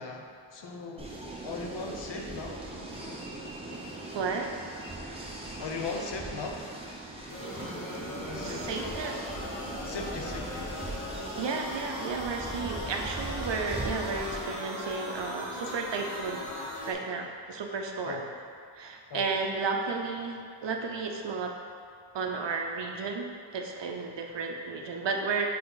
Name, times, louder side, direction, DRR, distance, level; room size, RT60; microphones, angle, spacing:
voice 1, 0.0-2.6 5.6-6.7 8.2-8.8 9.8-10.7 12.7-12.9 15.7-15.8 18.0-18.3 19.1-19.3, left 3 dB, 60° left, 2 dB, 0.7 m, -38 dB
sound 1, 1.0-14.4, right 2 dB, 10° right, 0.8 m, -40 dB
voice 2, 4.1-4.6 7.9-8.0 8.4-9.2 11.4-16.5 16.9-18.2 18.8-21.5 22.1-25.5, right 4 dB, 60° right, 2 dB, 0.7 m, -33 dB
sound 2, 7.3-16.9, left 1 dB, 30° left, 1.2 m, -39 dB
5.7 x 4.2 x 4.0 m, 2.2 s
wide cardioid pair, 150°, 48 cm